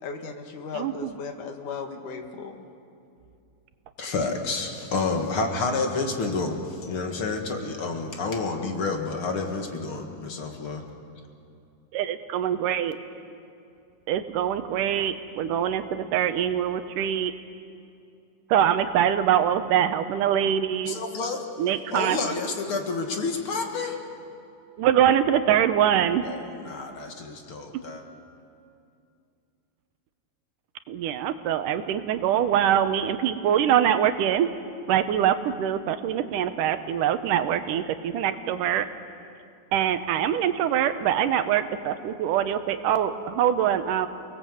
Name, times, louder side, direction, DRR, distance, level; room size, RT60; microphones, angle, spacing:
voice 1, 0.0-2.7, left 5 dB, 75° left, 5 dB, 3.1 m, -36 dB
voice 2, 0.8-1.1 11.9-13.0 14.1-17.3 18.5-21.0 21.6-22.2 24.8-26.3 30.9-34.5 34.9-38.9 39.7-44.1, right 10 dB, 85° right, 10 dB, 2.5 m, -24 dB
voice 3, 4.0-10.8 20.8-21.5 21.9-24.0 26.2-28.0, left 3 dB, 45° left, 3 dB, 2.4 m, -29 dB
29.0 x 19.0 x 7.9 m, 2.6 s
omnidirectional pair, 3.7 m